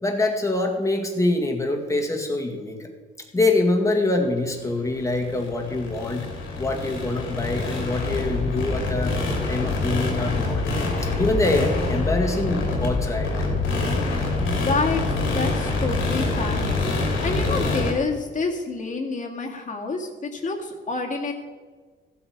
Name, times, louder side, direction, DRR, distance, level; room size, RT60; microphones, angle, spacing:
voice 1, 0.0-2.9 3.3-6.3 6.6-9.2 9.5-13.3, left 2 dB, 15° left, 2 dB, 2.0 m, -25 dB
sound 1, 4.6-17.9, left 3 dB, 80° left, 2.9 m, -26 dB
voice 2, 14.6-16.7 17.0-21.3, left 4 dB, 40° left, 1 dB, 2.0 m, -28 dB
15.0 x 8.0 x 4.7 m, 1.4 s
cardioid pair, 90°, 20 cm